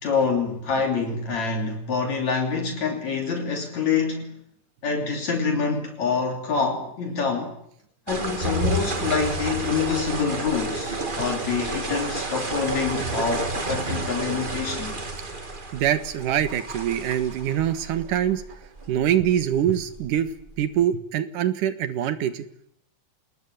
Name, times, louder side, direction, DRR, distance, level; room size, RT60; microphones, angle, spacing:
voice 1, 0.0-4.4 4.8-7.6 8.1-15.0, left 5 dB, 60° left, 4.3 m, -26 dB
sound 1, 8.1-20.6, right 2 dB, 20° right, 1.4 m, -31 dB
voice 2, 15.7-18.4 18.9-20.3 20.6-22.4, right 10 dB, 85° right, 3.1 m, -24 dB
27.0 x 20.5 x 9.6 m
omnidirectional pair, 3.6 m